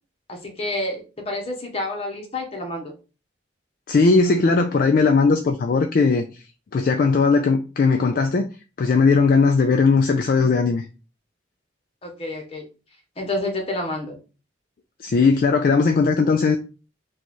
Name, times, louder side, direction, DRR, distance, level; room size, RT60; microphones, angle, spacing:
voice 1, 0.3-2.9 12.0-12.7 13.2-14.2, left 1 dB, 30° left, 0.9 m, -29 dB
voice 2, 3.9-6.3 6.7-8.5 8.8-10.8 15.0-16.6, left 4 dB, 50° left, 0.3 m, -18 dB
3.0 x 2.4 x 4.1 m
head